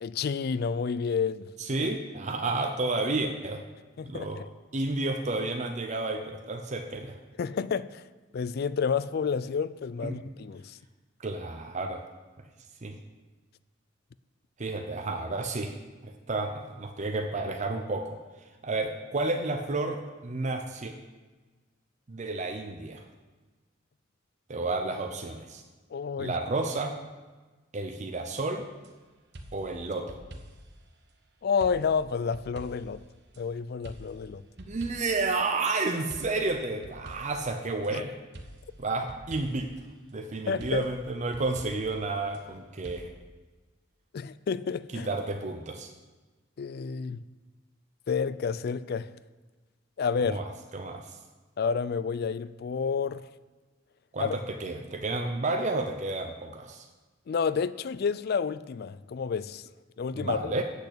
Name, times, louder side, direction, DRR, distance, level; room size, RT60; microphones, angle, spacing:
voice 1, 0.0-1.5 1.8-1.9 4.0-4.5 7.4-8.0 8.3-10.8 25.9-26.3 31.4-33.0 33.4-34.4 37.9-38.0 40.5-40.8 44.1-45.1 46.6-47.2 48.1-49.1 50.0-50.4 51.6-53.2 54.2-54.3 57.3-59.6 60.0-60.6, left 6 dB, 55° left, 0.4 m, -30 dB
voice 2, 1.6-3.6 4.0-4.4 4.7-7.2 10.0-10.2 11.2-12.0 12.8-13.0 14.6-15.7 16.0-18.2 18.6-20.9 22.1-23.0 24.5-25.6 26.2-27.0 27.7-28.6 29.5-30.2 34.6-38.1 38.8-39.7 40.1-43.1 44.9-45.9 50.2-51.2 54.1-56.9 60.1-60.6, right 3 dB, 40° right, 0.7 m, -31 dB
sound 1, 28.8-28.9 29.3-30.8 31.6-33.4 33.8-35.3 36.1-37.9 38.3-39.8 40.6-42.4 42.8-43.0, right 1 dB, 60° right, 1.1 m, -47 dB
8.1 x 6.6 x 8.1 m
head